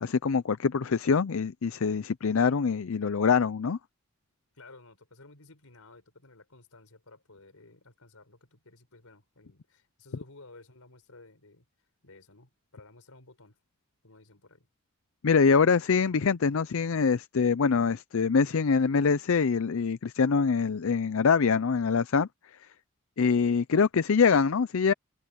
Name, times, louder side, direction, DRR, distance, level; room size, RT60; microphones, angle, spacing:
voice 1, 0.0-3.8 15.2-22.3 23.2-24.9, left 5 dB, 70° left, 0.5 m, -24 dB
voice 2, 4.5-11.6 12.0-13.6 14.0-14.7, left 2 dB, 85° left, 4.4 m, -54 dB
head